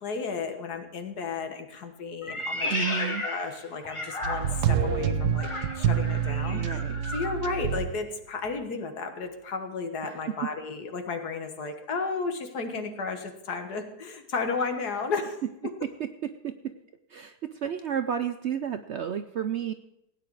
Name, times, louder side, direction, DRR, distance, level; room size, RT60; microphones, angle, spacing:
voice 1, 0.0-5.5 5.8-6.8 7.1-15.4, left 4 dB, 75° left, 6 dB, 1.9 m, -33 dB
Meow, 2.2-4.8 5.3-7.4, left 2 dB, 20° left, 1.2 m, -34 dB
voice 2, 2.7-3.2 6.5-7.0 10.0-10.2 15.8-16.8 17.1-19.7, right 8 dB, 65° right, 9 dB, 0.7 m, -32 dB
sound 1, 4.2-7.9 8.5-8.6, right 8 dB, 90° right, 1.5 m, -27 dB
16.5 x 9.4 x 4.7 m, 0.83 s
omnidirectional pair, 1.7 m